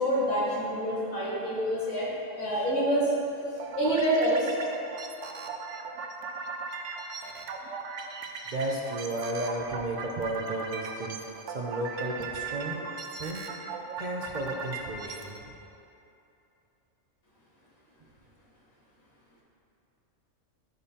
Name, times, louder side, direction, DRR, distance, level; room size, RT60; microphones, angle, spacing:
voice 1, 0.0-3.1 3.8-4.5, right 1 dB, 90° left, -7 dB, 2.2 m, -27 dB
sound 1, 3.6-15.4, right 4 dB, 75° right, 1.0 m, -38 dB
voice 2, 8.5-12.9 13.1-13.5 14.0-15.5, right 1 dB, 45° right, -2 dB, 0.7 m, -33 dB
13.5 x 5.3 x 2.8 m, 2.8 s
omnidirectional pair, 1.3 m